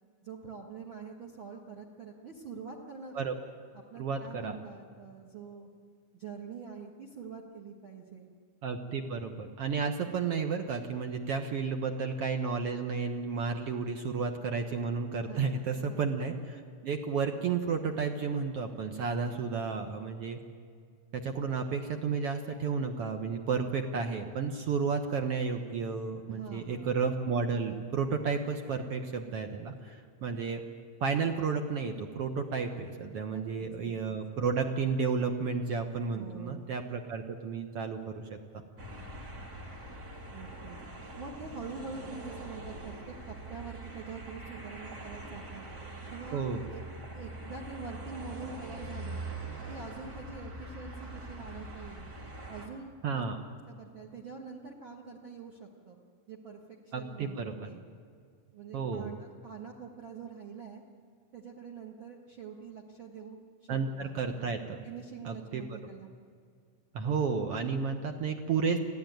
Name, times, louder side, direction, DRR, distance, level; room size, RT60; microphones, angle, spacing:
voice 1, 0.2-3.2 3.7-5.7 6.1-8.3 15.3-16.1 26.3-27.0 33.3-34.2 36.1-36.6 40.3-40.8 41.2-45.6 46.1-46.8 47.1-49.2 49.7-52.1 52.5-53.2 53.8-56.0 56.3-57.8 58.5-60.8 61.3-64.4 64.8-66.1, right 5 dB, 50° right, 2 dB, 1.6 m, -45 dB
voice 2, 4.0-4.6 8.6-20.4 21.1-30.6 31.0-38.6 46.3-46.6 53.0-53.4 56.9-57.7 58.7-59.1 63.7-64.8 65.2-65.7 66.9-68.8, right 5 dB, 65° right, 5 dB, 1.5 m, -32 dB
sound 1, 38.8-52.7, right 1 dB, 30° right, 2.7 m, -43 dB
25.0 x 15.5 x 9.3 m, 2.1 s
omnidirectional pair, 4.1 m